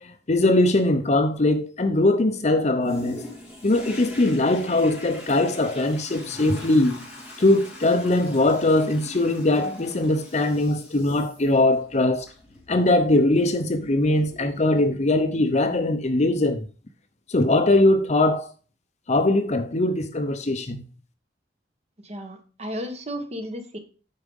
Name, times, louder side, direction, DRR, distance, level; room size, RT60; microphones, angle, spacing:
voice 1, 0.0-3.2 3.6-7.0 7.4-12.3 12.7-16.7 17.3-18.5 19.1-20.8, left 2 dB, 40° left, 0.8 m, -21 dB
Toilet flush, 2.8-15.2 15.8-15.9, left 1 dB, 5° right, 3.4 m, -42 dB
voice 2, 22.0-23.8, equal, 40° right, 1.3 m, -34 dB
8.7 x 4.9 x 5.4 m
head